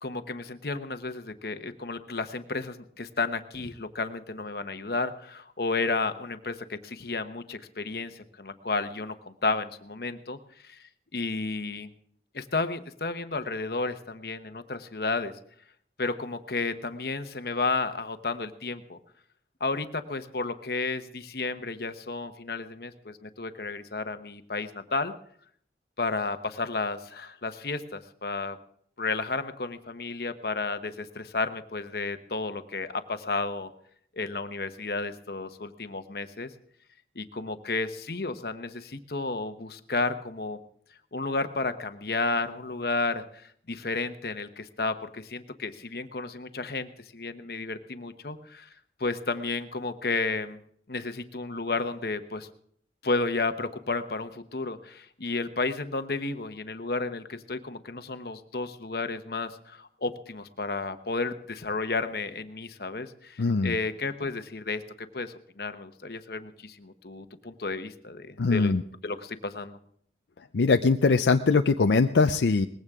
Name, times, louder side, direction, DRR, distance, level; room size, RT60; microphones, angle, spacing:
voice 1, 0.0-10.4 10.6-10.8 11.1-11.9 12.3-15.3 16.0-19.0 19.6-25.1 26.0-28.6 29.0-33.7 34.1-36.5 37.1-40.6 41.1-48.7 49.0-50.6 50.9-52.5 53.0-68.7 69.0-69.8, left 3 dB, 55° left, 9 dB, 1.0 m, -32 dB
voice 2, 63.4-63.7 68.4-68.8 70.5-72.7, left 4 dB, 80° left, 7 dB, 0.5 m, -22 dB
20.0 x 16.0 x 3.7 m, 0.64 s
head